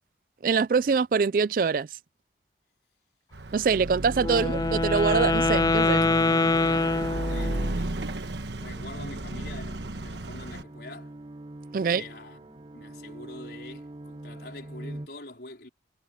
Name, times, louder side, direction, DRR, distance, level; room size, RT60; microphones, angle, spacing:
voice 1, 0.4-1.9 3.5-6.1 11.7-12.0, right 5 dB, 50° right, 0.4 m, -24 dB
Car passing by / Accelerating revving vroom, 3.3-10.6, right 2 dB, 80° right, 1.2 m, -33 dB
Wind instrument woodwind instrument, 4.2-7.8, left 3 dB, 20° left, 0.4 m, -24 dB
voice 2, 4.3-4.6 6.6-8.0 8.5-11.2 11.8-15.7, left 2 dB, 65° left, 4.0 m, -45 dB
sound 1, 8.8-15.1, right 1 dB, 30° right, 1.1 m, -43 dB
head